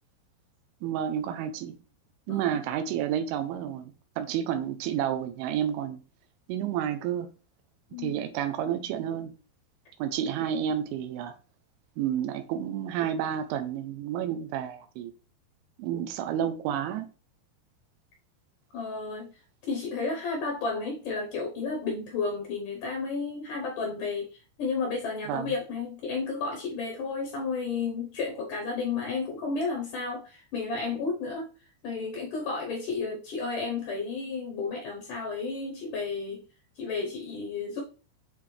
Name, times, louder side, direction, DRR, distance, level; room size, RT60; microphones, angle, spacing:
voice 1, 0.8-1.8 2.3-6.0 6.5-7.3 8.0-9.3 10.0-11.3 12.0-15.1 15.8-17.1 25.3-25.5, right 9 dB, 85° right, 2.9 m, -30 dB
voice 2, 2.3-2.6 7.9-8.2 18.7-19.3 19.6-31.5 31.8-36.4 36.8-37.8, left 4 dB, 80° left, 1.8 m, -32 dB
8.8 x 3.4 x 3.3 m
omnidirectional pair, 5.4 m